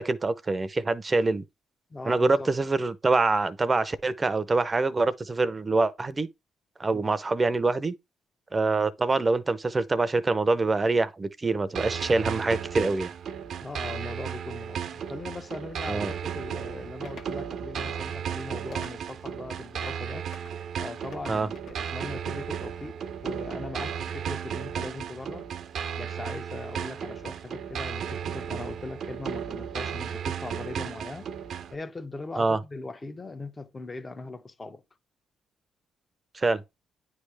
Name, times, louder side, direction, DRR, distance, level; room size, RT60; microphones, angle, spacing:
voice 1, 0.0-1.4 2.1-6.3 6.8-7.9 8.5-13.1 15.9-16.1 21.3-21.5 32.4-32.6 36.3-36.6, right 3 dB, 25° right, 0.6 m, -25 dB
voice 2, 1.9-2.5 6.9-7.1 13.6-20.3 20.8-25.5 26.0-31.3 31.7-34.8, left 3 dB, 25° left, 0.7 m, -40 dB
sound 1, 11.8-31.8, right 8 dB, 65° right, 0.6 m, -34 dB
sound 2, 17.0-17.4 18.7-19.3 20.3-20.6 21.1-21.8, left 5 dB, 65° left, 1.2 m, -48 dB
9.4 x 3.3 x 3.3 m
cardioid pair, 90°, 0 cm